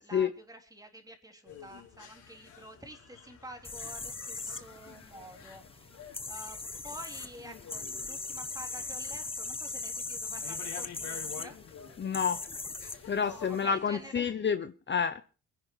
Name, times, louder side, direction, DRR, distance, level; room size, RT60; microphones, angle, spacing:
voice 1, 0.0-6.6 6.8-11.6 13.2-14.4, right 1 dB, 10° right, 4 dB, 3.3 m, -49 dB
sound 1, 1.4-14.1, left 7 dB, 75° left, 4.6 m, -50 dB
sound 2, 3.6-13.6, left 3 dB, 20° left, 1.1 m, -40 dB
voice 2, 12.0-12.4 13.1-15.2, left 7 dB, 35° left, 11 dB, 0.9 m, -29 dB
22.5 x 10.0 x 4.6 m, 0.37 s
cardioid pair, 90°, 30 cm